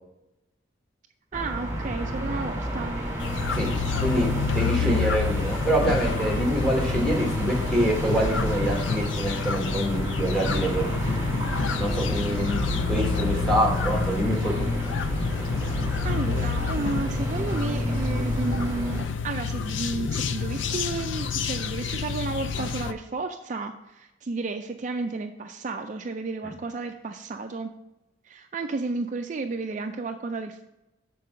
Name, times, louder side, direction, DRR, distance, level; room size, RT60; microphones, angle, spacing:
sound 1, 1.3-19.0, equal, 15° right, 1.7 m, -30 dB
voice 1, 1.3-3.0 4.8-5.0 16.0-27.7 28.3-30.6, right 3 dB, 40° right, 5 dB, 0.4 m, -32 dB
sound 2, 3.2-22.9, left 6 dB, 70° left, 0.5 m, -29 dB
voice 2, 4.0-10.9 11.8-12.6 12.9-14.7, right 1 dB, 5° left, -2 dB, 1.5 m, -26 dB
6.6 x 4.5 x 6.7 m, 0.92 s
head